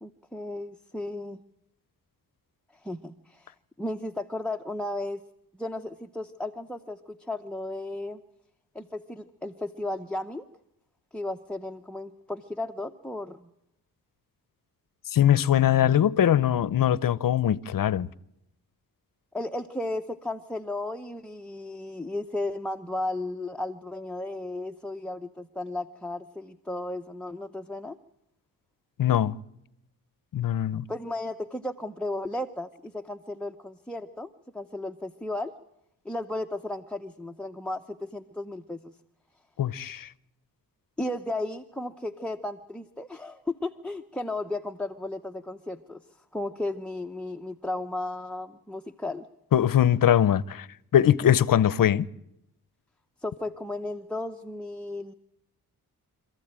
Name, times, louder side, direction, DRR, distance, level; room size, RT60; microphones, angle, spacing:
voice 1, 0.0-1.4 2.7-5.2 5.6-8.2 8.7-10.5 11.1-13.5 19.3-28.0 30.9-35.5 36.0-39.0 41.0-46.0 46.3-49.3 53.2-55.1, left 2 dB, 5° left, 0.8 m, -34 dB
voice 2, 15.1-18.1 29.0-29.4 30.3-30.8 39.6-40.1 49.5-50.7 50.9-52.1, left 10 dB, 60° left, 0.8 m, -21 dB
27.0 x 14.5 x 8.9 m
cardioid pair, 95°, 38 cm